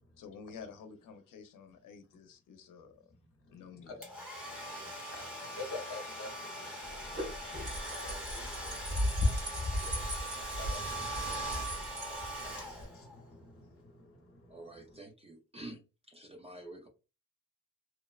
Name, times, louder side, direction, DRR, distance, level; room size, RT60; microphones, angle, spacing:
voice 1, 0.2-3.1 3.5-3.9, left 6 dB, 85° left, 0.6 m, -50 dB
voice 2, 3.4-4.1 4.4-15.0, left 2 dB, 45° left, 0.9 m, -50 dB
Domestic sounds home sounds, 4.0-13.2, right 1 dB, 5° right, 0.8 m, -41 dB
sound 1, 6.8-12.9, left 1 dB, 50° right, 1.4 m, -36 dB
voice 3, 14.5-15.8 16.1-16.9, right 1 dB, 20° right, 0.4 m, -48 dB
3.0 x 2.0 x 2.3 m
wide cardioid pair, 160°, 31 cm